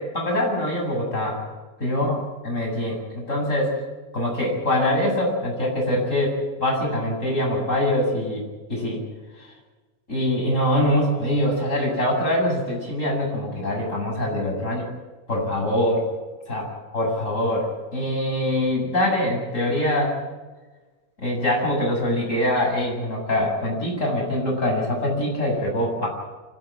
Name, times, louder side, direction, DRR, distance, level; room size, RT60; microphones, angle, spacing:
voice 1, 0.0-1.4 1.8-2.2 2.4-3.8 4.1-9.0 9.4-9.5 10.1-14.9 15.3-16.1 16.5-16.7 16.9-20.2 21.2-26.1, left 1 dB, 15° left, -1 dB, 7.8 m, -24 dB
25.5 x 15.5 x 9.0 m, 1.2 s
omnidirectional pair, 6.0 m